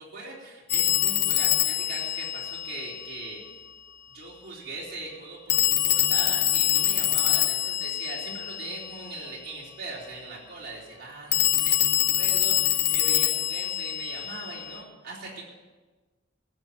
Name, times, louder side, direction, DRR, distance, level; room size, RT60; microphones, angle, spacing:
voice 1, 0.0-3.4 4.1-15.4, right 2 dB, 50° right, -5 dB, 3.9 m, -40 dB
Telephone, 0.7-3.3 5.5-9.1 11.3-14.8, left 13 dB, 55° left, 1.0 m, -25 dB
15.0 x 7.7 x 8.5 m, 1.3 s
head